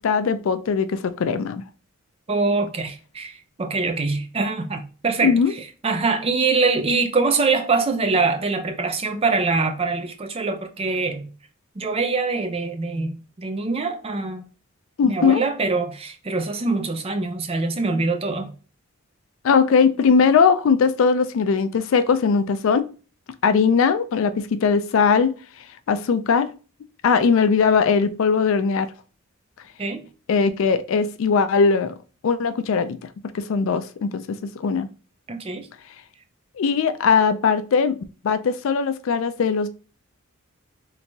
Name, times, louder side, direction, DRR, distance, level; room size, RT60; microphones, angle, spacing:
voice 1, 0.0-1.6 5.2-5.5 15.0-15.4 19.4-22.9 23.4-25.3 25.9-26.5 27.0-28.9 30.3-31.9 32.2-33.0 33.3-34.2 34.6-34.9 36.6-38.0 38.2-39.7, left 5 dB, 65° left, 0.3 m, -19 dB
voice 2, 2.3-11.3 11.8-14.4 15.0-18.5 29.8-30.1 35.3-35.7, right 3 dB, 25° right, 0.5 m, -24 dB
3.3 x 2.9 x 2.7 m
head